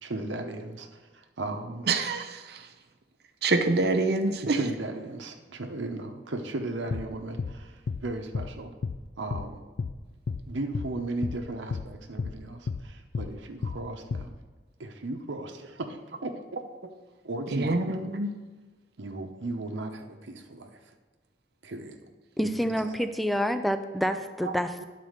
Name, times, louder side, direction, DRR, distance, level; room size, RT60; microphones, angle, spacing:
voice 1, 0.0-1.9 4.4-8.7 9.2-9.6 10.5-14.3 14.8-16.3 17.2-18.1 19.0-20.9 21.6-22.0 22.4-22.9, right 2 dB, 90° right, 4 dB, 0.8 m, -36 dB
voice 2, 1.9-2.6 3.4-4.6 17.5-18.3, right 3 dB, 60° right, 7 dB, 0.6 m, -26 dB
sound 1, 6.9-7.1 7.4-7.5 7.9-8.0 8.3-8.5 8.8-9.0 9.3-9.5 9.8-9.9 10.3-10.4 10.7-10.9 11.2-11.4 11.7-11.9 12.2-12.3 12.7-12.8 13.1-13.3 13.6-13.8 14.1-14.3, left 4 dB, 70° left, 0.4 m, -31 dB
voice 3, 22.4-24.9, equal, ahead, 9 dB, 0.3 m, -28 dB
10.5 x 4.2 x 6.5 m, 1.3 s
head